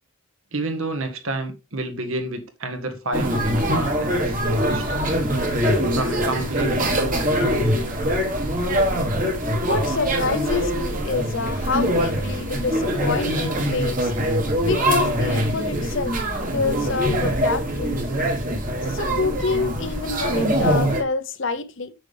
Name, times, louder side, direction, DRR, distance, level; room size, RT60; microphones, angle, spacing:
voice 1, 0.5-5.0 5.9-7.5, right 2 dB, 70° right, 1.6 m, -29 dB
sound 1, 3.1-21.0, equal, 35° right, 1.5 m, -23 dB
voice 2, 9.7-14.1 14.6-16.2 16.5-18.0 18.9-21.9, left 4 dB, 55° left, 0.8 m, -27 dB
8.1 x 6.2 x 3.5 m
head